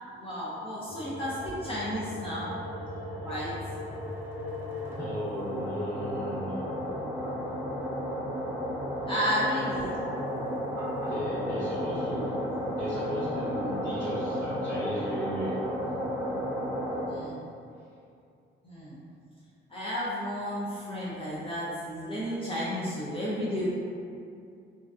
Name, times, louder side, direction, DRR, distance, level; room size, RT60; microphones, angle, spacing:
voice 1, 0.2-2.5 3.2-3.5 9.1-10.0 17.1-17.4 18.6-19.0 19.7-23.7, equal, 30° left, -9 dB, 0.5 m, -32 dB
sound 1, 0.9-17.1, equal, 10° right, 0.7 m, -34 dB
voice 2, 5.0-6.7 11.1-12.4 12.7-15.7, equal, 50° left, -16 dB, 1.1 m, -35 dB
2.5 x 2.2 x 2.4 m, 2.4 s
cardioid pair, 90°, 20 cm